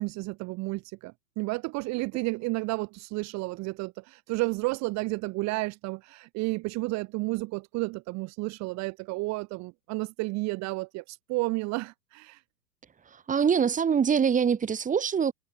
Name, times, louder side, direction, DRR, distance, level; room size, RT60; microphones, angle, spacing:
voice 1, 0.0-12.4, right 24 dB, 35° right, 2.4 m, -32 dB
voice 2, 13.3-15.3, right 7 dB, 15° right, 3.6 m, -24 dB
figure-of-eight pair, 105°, 46 cm